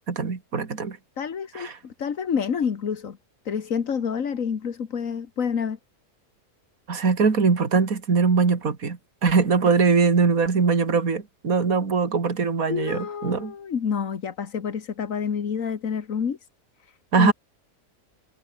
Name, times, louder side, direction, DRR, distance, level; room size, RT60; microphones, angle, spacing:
voice 1, 0.1-1.0 1.5-1.7 6.9-13.5 17.1-17.3, right 5 dB, 70° right, 2.9 m, -22 dB
voice 2, 1.2-3.2 3.5-5.8 12.7-16.4 16.8-17.3, left 7 dB, 65° left, 1.8 m, -28 dB
omnidirectional pair, 1.5 m